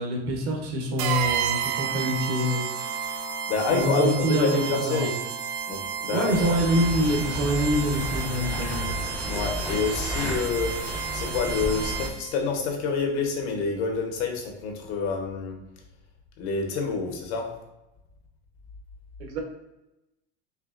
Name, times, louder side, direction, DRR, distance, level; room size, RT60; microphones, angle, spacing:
voice 1, 0.0-3.3 3.7-5.1 6.1-9.0 19.2-19.4, equal, 70° right, 2 dB, 1.0 m, -26 dB
sound 1, 1.0-12.4, right 8 dB, 90° right, 0.5 m, -32 dB
voice 2, 3.5-5.1 5.7-6.6 9.2-10.7 11.1-15.6 16.4-17.5, left 4 dB, 85° left, 2 dB, 1.0 m, -27 dB
sound 2, 6.3-12.1, left 2 dB, 5° left, 0.4 m, -32 dB
4.7 x 2.8 x 2.5 m, 0.95 s
cardioid pair, 175°, 32 cm